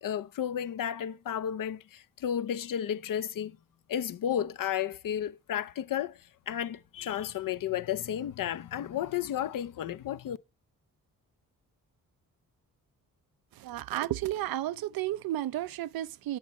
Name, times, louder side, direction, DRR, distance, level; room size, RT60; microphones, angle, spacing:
voice 1, 0.0-3.6 3.9-10.4, left 10 dB, 65° left, 0.6 m, -33 dB
voice 2, 13.6-16.4, right 14 dB, 80° right, 0.5 m, -32 dB
8.1 x 7.3 x 4.2 m
cardioid pair, 65°, 35 cm